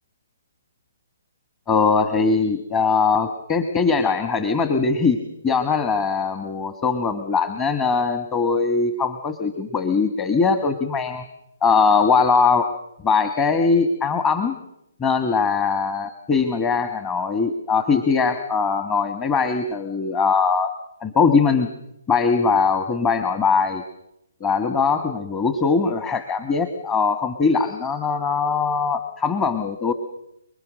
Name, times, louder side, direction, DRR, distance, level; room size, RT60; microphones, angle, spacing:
voice 1, 1.7-5.2 5.4-11.2 11.6-12.7 13.0-14.6 15.0-20.7 21.0-21.7 22.1-23.8 24.4-29.9, left 5 dB, 20° left, 8 dB, 1.6 m, -21 dB
29.0 x 21.0 x 6.5 m, 0.81 s
hypercardioid pair, 140°, 0 cm